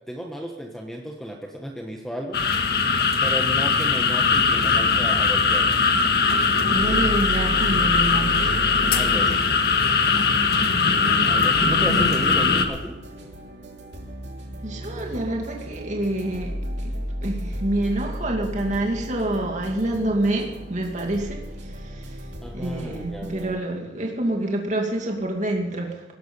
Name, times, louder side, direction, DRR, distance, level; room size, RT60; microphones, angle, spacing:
voice 1, 0.1-2.4 3.2-5.8 8.9-9.4 11.2-13.0 22.4-23.6, equal, ahead, 1 dB, 1.2 m, -34 dB
sound 1, 2.3-12.7, left 4 dB, 60° left, 1.6 m, -20 dB
sound 2, 4.3-23.5, equal, 65° right, 3.1 m, -35 dB
voice 2, 6.7-8.4 11.6-12.1 14.6-16.5 16.8-16.9 17.2-22.2 22.5-26.0, right 1 dB, 40° right, 1 dB, 2.4 m, -27 dB
17.5 x 12.5 x 5.5 m, 1.1 s
head